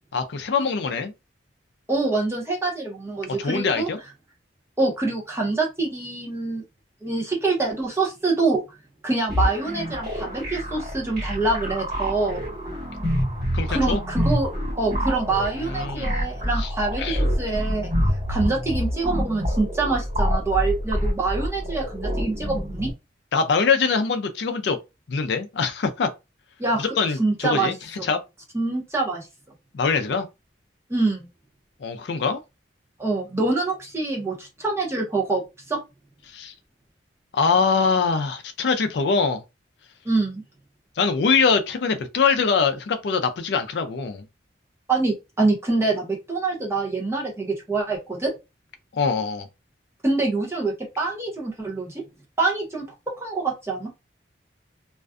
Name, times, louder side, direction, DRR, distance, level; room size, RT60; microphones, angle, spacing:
voice 1, 0.1-1.1 3.4-4.0 13.5-14.0 15.6-16.1 16.6-16.7 17.0-17.2 23.3-24.8 25.1-26.1 26.8-27.7 28.0-28.2 29.7-30.3 31.8-32.4 36.3-36.5 37.3-39.4 41.0-44.2 48.9-49.5, left 5 dB, 60° left, 0.4 m, -23 dB
voice 2, 1.9-3.9 4.8-6.6 7.0-8.8 9.0-12.5 13.7-14.5 14.8-17.9 18.3-22.9 26.6-28.1 28.5-29.3 30.9-31.3 33.0-35.4 35.7-35.8 40.0-40.4 44.9-48.3 50.0-52.0 52.4-52.8 53.2-53.9, right 3 dB, 15° right, 0.7 m, -25 dB
sound 1, 9.3-22.9, equal, 40° right, 1.4 m, -27 dB
2.4 x 2.2 x 2.4 m
head